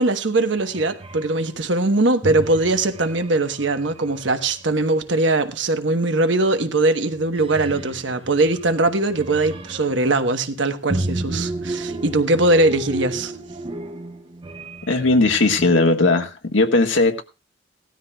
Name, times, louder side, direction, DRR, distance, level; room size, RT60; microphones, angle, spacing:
voice 1, 0.0-13.3, right 2 dB, 70° right, 1.1 m, -21 dB
sound 1, 0.6-1.4 2.2-4.9 6.5-6.8 7.1-10.1 10.9-15.7, right 2 dB, 30° right, 0.7 m, -33 dB
voice 2, 14.9-17.2, left 2 dB, 85° left, 1.6 m, -18 dB
17.5 x 13.0 x 2.3 m
head